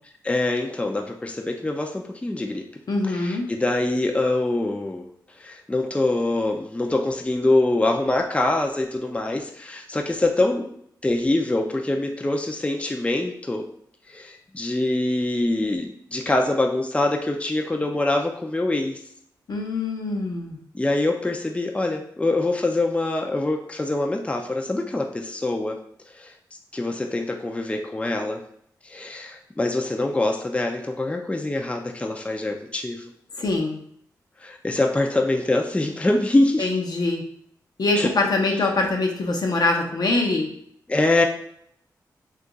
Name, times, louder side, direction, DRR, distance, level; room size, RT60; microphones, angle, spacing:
voice 1, 0.2-2.6 3.1-5.1 5.4-10.7 11.0-13.7 14.1-19.0 20.7-25.8 26.2-26.3 26.7-28.4 28.8-33.0 34.4-36.7 38.0-38.1 40.9-41.2, left 2 dB, 15° left, 2 dB, 0.5 m, -24 dB
voice 2, 2.9-3.5 19.5-20.6 33.4-33.8 36.6-37.2 37.8-40.5, left 2 dB, 60° left, 1 dB, 0.7 m, -23 dB
2.8 x 2.4 x 3.9 m, 0.68 s
supercardioid pair, 45°, 8 cm